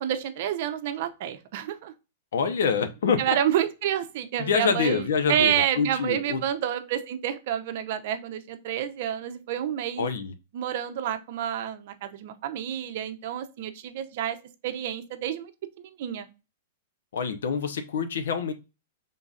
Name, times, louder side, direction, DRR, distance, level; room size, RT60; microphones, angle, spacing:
voice 1, 0.0-1.9 3.2-5.0 5.3-10.1 10.5-14.4 14.6-15.5 15.8-16.3, right 10 dB, 45° right, 9 dB, 0.6 m, -29 dB
voice 2, 2.3-3.4 4.4-6.4 10.0-10.3 17.1-18.5, left 6 dB, 85° left, 9 dB, 0.8 m, -26 dB
5.4 x 3.8 x 2.4 m, 0.28 s
supercardioid pair, 175°, 0 cm